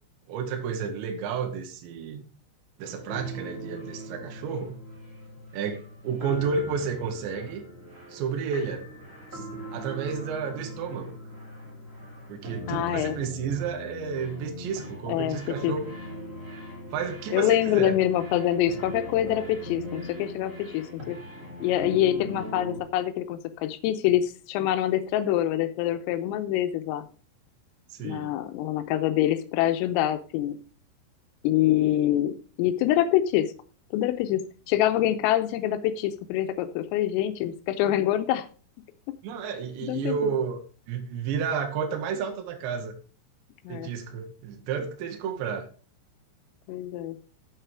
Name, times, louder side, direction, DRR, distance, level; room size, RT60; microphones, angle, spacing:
voice 1, 0.3-2.3 2.8-4.7 5.5-7.6 8.1-8.9 9.3-11.2 12.3-15.8 16.9-17.9 27.9-28.4 39.2-40.6 40.9-43.0 43.7-45.7, right 6 dB, 70° right, 4 dB, 3.2 m, -31 dB
sound 1, 2.8-22.8, equal, 20° right, 2.3 m, -40 dB
voice 2, 12.7-13.2 15.1-15.4 15.6-15.7 17.3-21.2 21.6-27.1 28.0-30.6 31.4-33.5 33.9-38.5 39.8-40.2 43.6-43.9 46.7-47.2, left 12 dB, 90° left, 10 dB, 3.4 m, -25 dB
9.0 x 7.7 x 4.7 m, 0.37 s
omnidirectional pair, 6.0 m